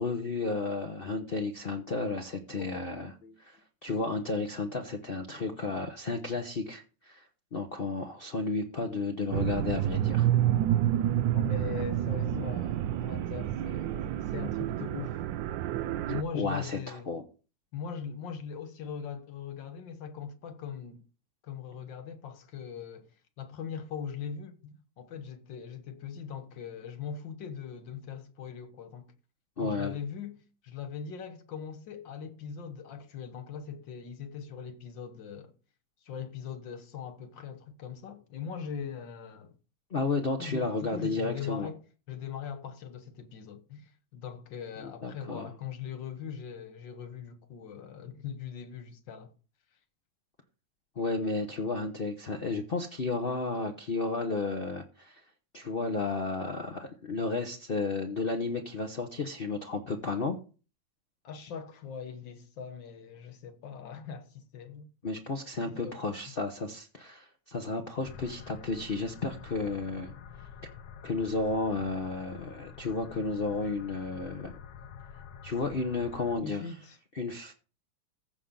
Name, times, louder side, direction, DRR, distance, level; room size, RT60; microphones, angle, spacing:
voice 1, 0.0-3.1 3.4-3.6 3.8-7.3 7.5-10.3 16.3-17.2 29.6-30.0 39.9-41.7 44.8-45.5 51.0-55.2 55.5-60.4 65.0-70.1 71.0-74.5 75.4-76.7 77.2-77.5, left 3 dB, 40° left, 0.8 m, -32 dB
sound 1, 9.3-16.2, right 12 dB, 75° right, 1.3 m, -29 dB
voice 2, 11.3-15.2 16.1-17.1 17.7-21.0 21.4-23.1 23.4-29.1 29.6-30.4 30.6-35.5 36.0-39.5 40.4-41.8 42.1-49.3 61.2-64.9 65.7-66.0 66.3-66.4 76.4-77.0, left 7 dB, 70° left, 1.8 m, -41 dB
sound 2, 68.0-76.4, left 7 dB, 90° left, 1.7 m, -48 dB
15.0 x 5.8 x 3.8 m
omnidirectional pair, 2.1 m